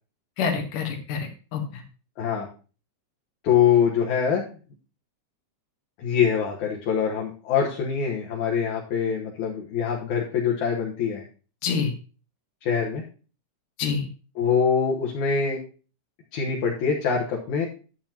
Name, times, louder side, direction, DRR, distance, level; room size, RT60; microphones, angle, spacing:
voice 1, 0.4-1.8 11.6-11.9 13.8-14.1, left 6 dB, 90° left, 3 dB, 3.0 m, -27 dB
voice 2, 3.4-4.5 6.0-11.2 12.6-13.0 14.4-15.6 16.3-17.7, left 7 dB, 70° left, -2 dB, 2.6 m, -24 dB
11.0 x 7.7 x 2.9 m, 0.36 s
omnidirectional pair, 3.6 m